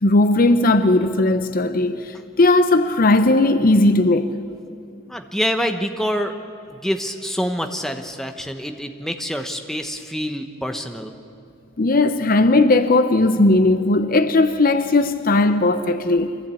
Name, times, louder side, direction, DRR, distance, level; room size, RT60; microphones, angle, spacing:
voice 1, 0.0-4.3 11.8-16.4, left 2 dB, 45° left, 0.7 m, -17 dB
voice 2, 5.1-6.3 6.8-11.1, equal, ahead, 1.0 m, -26 dB
24.0 x 15.0 x 8.4 m
head